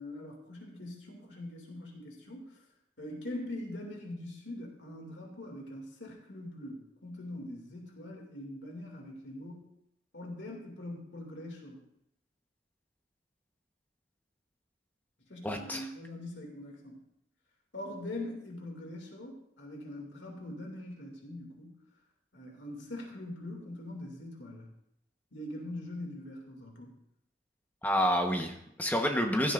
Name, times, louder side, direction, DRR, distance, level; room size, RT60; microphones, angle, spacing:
voice 1, 0.0-2.6 3.0-9.7 10.1-11.8 15.3-17.0 17.7-21.8 22.3-24.7 25.3-27.0, left 1 dB, 85° left, 0 dB, 2.5 m, -43 dB
voice 2, 15.4-15.9 27.8-29.5, equal, 10° left, 3 dB, 1.2 m, -29 dB
15.5 x 13.0 x 2.6 m, 0.75 s
head